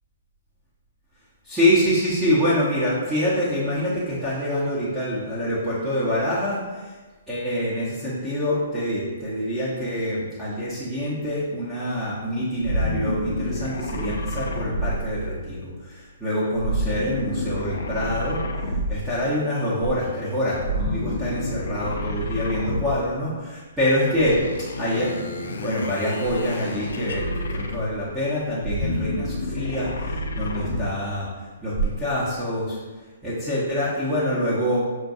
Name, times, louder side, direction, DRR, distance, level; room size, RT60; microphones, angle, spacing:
voice 1, 1.4-6.9 7.3-24.4 24.8-32.8 33.2-34.8, equal, 10° right, -12 dB, 0.9 m, -25 dB
sound 1, 12.6-15.6 16.5-19.2 20.5-23.1 24.1-28.1 28.5-31.0, equal, 80° left, 0.5 m, -29 dB
6.1 x 2.2 x 2.6 m, 1.3 s
hypercardioid pair, 145°, 0 cm